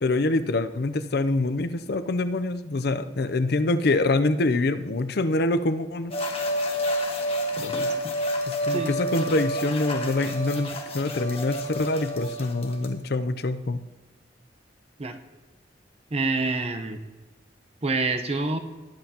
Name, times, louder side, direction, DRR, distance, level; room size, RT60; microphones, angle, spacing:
voice 1, 0.0-6.1 7.6-7.9 8.5-13.8, left 2 dB, 60° left, 12 dB, 0.6 m, -25 dB
sound 1, 6.1-12.9, equal, 35° left, 1.4 m, -29 dB
voice 2, 16.1-17.0 17.8-18.6, right 3 dB, 35° right, 7 dB, 0.9 m, -27 dB
20.5 x 7.9 x 2.9 m, 1.2 s
head